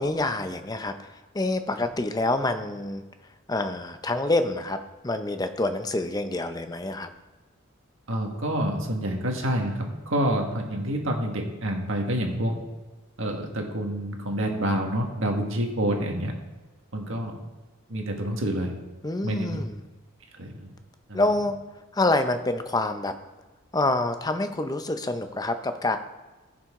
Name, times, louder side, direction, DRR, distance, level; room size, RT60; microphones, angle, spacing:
voice 1, 0.0-3.0 3.5-7.1 19.0-19.8 21.1-21.5 21.9-23.2 23.7-26.0, left 2 dB, 20° left, 8 dB, 0.6 m, -27 dB
voice 2, 8.1-12.6 13.2-16.3 16.9-17.4 17.9-18.7 19.2-19.6 20.4-20.7 21.1-21.2, right 1 dB, 70° right, 2 dB, 1.6 m, -28 dB
15.5 x 6.0 x 3.7 m, 1.2 s
head